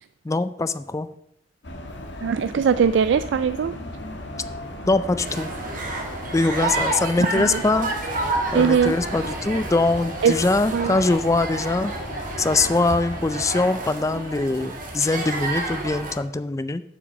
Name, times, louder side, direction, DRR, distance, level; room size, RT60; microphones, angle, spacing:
voice 1, 0.2-1.1 4.9-5.5 6.3-7.9 8.5-11.9 12.4-16.8, left 3 dB, 15° left, 14 dB, 0.4 m, -22 dB
sound 1, 1.6-13.8, left 1 dB, 85° left, 1.6 m, -37 dB
voice 2, 2.2-3.7 7.3-7.6 8.5-8.9 10.2-10.3 10.7-10.9, right 7 dB, 80° right, 13 dB, 0.3 m, -20 dB
sound 2, 5.2-16.1, right 2 dB, 50° right, 1.8 m, -30 dB
8.0 x 6.0 x 7.1 m, 0.77 s
head